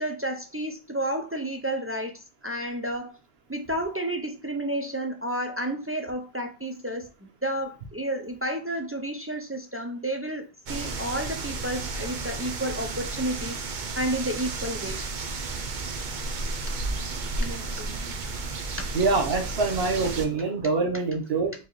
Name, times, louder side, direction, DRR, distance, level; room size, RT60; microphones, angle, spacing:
voice 1, 0.0-2.1 2.4-3.1 3.5-10.4 10.7-13.5 14.0-15.0 17.4-18.1 18.8-18.9 19.6-19.8, right 1 dB, 25° right, 4 dB, 0.3 m, -31 dB
sound 1, 10.7-20.3, right 3 dB, 55° right, 0.7 m, -32 dB
voice 2, 18.9-21.5, right 3 dB, 75° right, 3 dB, 1.1 m, -25 dB
4.5 x 3.4 x 3.0 m, 0.31 s
omnidirectional pair, 1.1 m